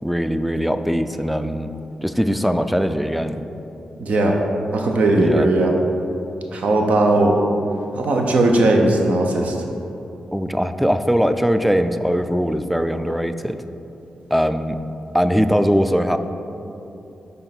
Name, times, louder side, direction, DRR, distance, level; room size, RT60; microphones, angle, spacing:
voice 1, 0.0-1.7 2.0-3.5 5.2-5.5 10.3-13.6 14.3-14.8 15.1-16.2, equal, ahead, 9 dB, 0.3 m, -20 dB
voice 2, 4.0-4.3 4.7-5.7 6.5-7.4 7.9-9.6, right 2 dB, 70° right, 1 dB, 0.8 m, -17 dB
5.5 x 3.9 x 5.9 m, 2.9 s
cardioid pair, 65°, 2 cm